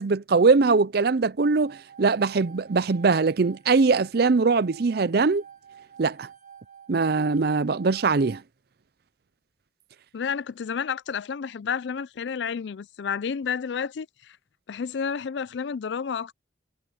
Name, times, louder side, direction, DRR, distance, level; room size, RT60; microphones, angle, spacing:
voice 1, 0.0-5.4 6.0-6.3 6.9-8.4, right 4 dB, 55° right, 0.5 m, -21 dB
sound 1, 1.4-8.4, right 8 dB, 40° right, 1.9 m, -49 dB
voice 2, 10.1-14.4 14.7-16.3, left 6 dB, 70° left, 0.4 m, -30 dB
head